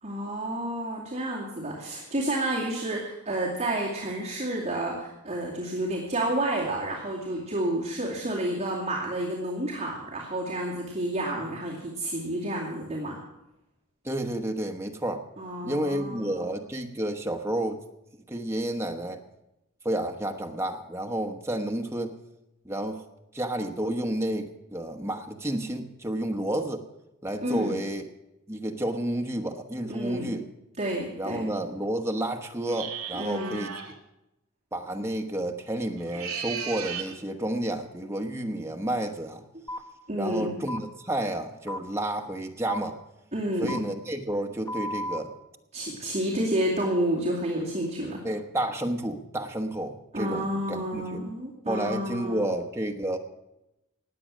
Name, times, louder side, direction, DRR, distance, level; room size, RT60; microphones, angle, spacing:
voice 1, 0.0-13.2 15.4-16.5 27.4-27.7 29.9-30.3 30.8-31.5 33.1-33.6 40.1-40.5 43.3-43.8 45.7-48.2 50.1-52.5, right 1 dB, 30° right, -5 dB, 2.4 m, -30 dB
voice 2, 14.0-15.2 15.6-17.8 18.3-19.2 19.8-22.1 22.6-23.0 23.3-26.8 27.2-28.0 28.5-30.5 31.2-33.7 34.7-39.4 40.1-43.0 43.6-45.3 48.2-51.2 51.7-53.2, right 1 dB, 10° right, 4 dB, 1.1 m, -30 dB
sound 1, 32.7-33.9 36.0-37.1, right 7 dB, 80° right, 2.4 m, -35 dB
sound 2, 39.7-39.8 40.7-40.8 41.7-41.8 42.7-42.8 43.7-43.8 44.7-45.2, left 1 dB, 15° left, 1.2 m, -33 dB
19.0 x 7.8 x 6.2 m, 0.92 s
head